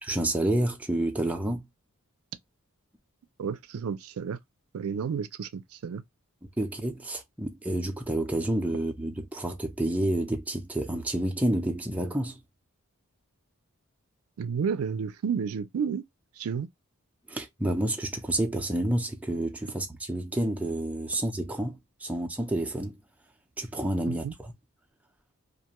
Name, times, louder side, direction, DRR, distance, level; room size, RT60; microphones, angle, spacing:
voice 1, 0.0-1.6 6.6-12.4 17.3-23.0 23.6-24.2, right 1 dB, 5° right, 0.5 m, -29 dB
voice 2, 3.4-4.4 4.7-6.0 14.4-16.1 16.4-16.7 24.1-24.3, right 6 dB, 85° right, 0.4 m, -31 dB
2.5 x 2.2 x 2.8 m
head